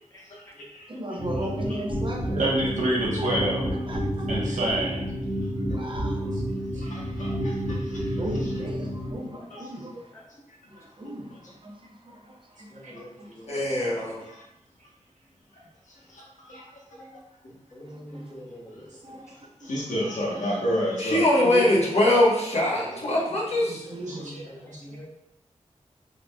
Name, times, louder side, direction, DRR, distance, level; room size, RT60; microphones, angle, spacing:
voice 1, 0.9-2.5 3.2-3.3 3.7-4.3 5.7-6.4 8.2-10.1 10.7-13.3 17.9-18.3 19.0-19.3 19.6-19.9 21.4-21.9 23.7-24.3, equal, 40° right, 1 dB, 0.6 m, -36 dB
sound 1, 1.2-9.1, equal, ahead, 1.5 m, -30 dB
voice 2, 2.4-3.7 4.3-5.1 12.8-12.9 24.1-24.2, right 1 dB, 80° right, -4 dB, 1.0 m, -26 dB
voice 3, 6.8-8.2 14.2-14.4 16.1-16.6 16.9-17.1 19.6-21.2, equal, 80° left, -4 dB, 1.1 m, -31 dB
voice 4, 12.7-13.5 17.7-18.9 22.8-23.1 23.9-25.1, equal, 20° left, 0 dB, 0.7 m, -44 dB
voice 5, 13.5-14.2 20.4-20.6 21.0-23.8, left 1 dB, 55° left, -5 dB, 1.1 m, -22 dB
3.9 x 3.1 x 2.2 m, 0.86 s
wide cardioid pair, 80°, 13 cm